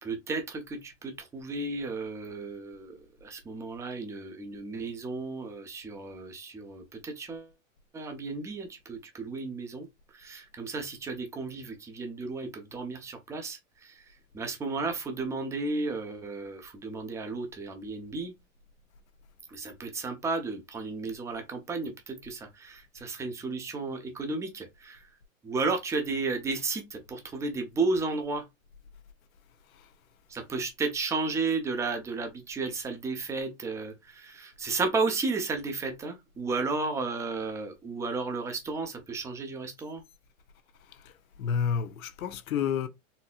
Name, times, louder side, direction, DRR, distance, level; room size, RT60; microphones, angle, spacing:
voice 1, 0.0-7.5 7.9-18.3 19.5-25.1 25.4-28.5 30.3-40.0, right 3 dB, 5° right, 0.5 m, -33 dB
voice 2, 41.4-42.9, left 7 dB, 80° left, 0.8 m, -29 dB
4.2 x 2.7 x 2.3 m
hypercardioid pair, 140°, 41 cm